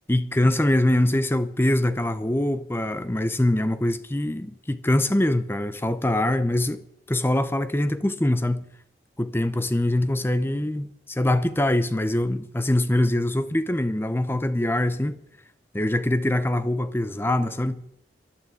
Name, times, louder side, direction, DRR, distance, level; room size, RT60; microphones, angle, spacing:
voice 1, 0.1-6.8 7.1-8.6 9.2-15.2 15.7-17.8, left 1 dB, 15° left, 0.6 m, -23 dB
14.0 x 11.5 x 8.4 m
head